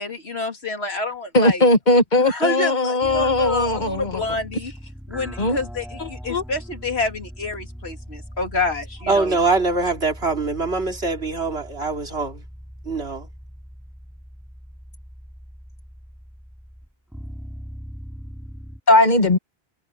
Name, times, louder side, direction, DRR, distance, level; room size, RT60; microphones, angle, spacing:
voice 1, 0.0-1.6 2.2-4.7 5.1-9.4, left 2 dB, 80° left, 3.1 m, -27 dB
voice 2, 1.3-4.2 5.4-5.6 6.0-6.4 18.9-19.4, left 2 dB, 45° left, 1.8 m, -18 dB
sound 1, 3.0-18.8, equal, ahead, 3.1 m, -40 dB
voice 3, 9.1-12.4 12.8-13.3, right 3 dB, 85° right, 3.4 m, -23 dB
omnidirectional pair, 1.1 m